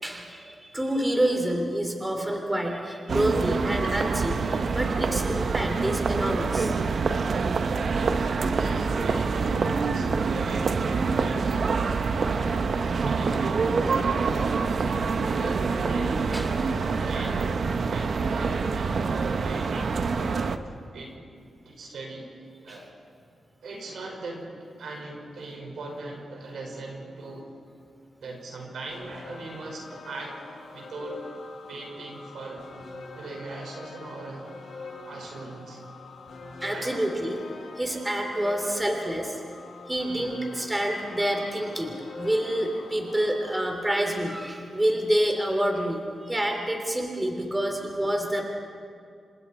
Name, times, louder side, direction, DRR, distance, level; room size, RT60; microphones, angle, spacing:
voice 1, 0.0-6.7 16.3-16.5 22.7-22.8 36.6-37.4 37.7-39.4 39.9-48.4, right 1 dB, 15° right, 2 dB, 3.1 m, -28 dB
sound 1, 3.1-20.6, right 4 dB, 60° right, 1.0 m, -26 dB
voice 2, 8.5-12.5 12.8-20.5 20.9-21.2 21.6-22.3 22.6-22.9 23.6-24.5 24.8-27.5 28.2-30.4 30.7-31.2 31.7-32.6 33.2-34.5 35.0-35.8 36.7-37.1 45.7-45.9, right 2 dB, 85° right, 0 dB, 5.5 m, -39 dB
sound 2, 28.9-43.7, left 3 dB, 75° left, 6.0 m, -44 dB
28.5 x 26.0 x 4.4 m, 2.3 s
wide cardioid pair, 105°, 0 cm